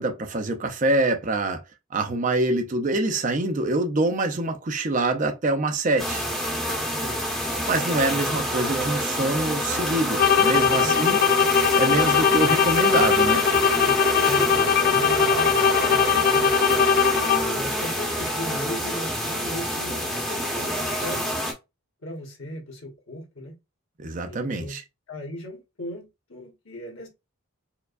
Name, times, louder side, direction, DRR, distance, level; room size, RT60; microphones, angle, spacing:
voice 1, 0.0-1.6 1.9-6.2 7.7-11.2 11.7-13.5 24.0-24.8, right 2 dB, 35° right, 0.5 m, -25 dB
sound 1, 6.0-21.5, equal, ahead, 0.7 m, -27 dB
sound 2, 10.1-17.7, left 7 dB, 45° left, 0.3 m, -20 dB
voice 2, 10.7-11.2 13.8-16.6 17.3-21.3 22.0-23.5 24.3-24.8 25.1-27.1, left 1 dB, 65° left, 1.2 m, -37 dB
sound 3, 13.6-18.0, right 3 dB, 65° right, 0.9 m, -39 dB
4.5 x 2.3 x 2.4 m
head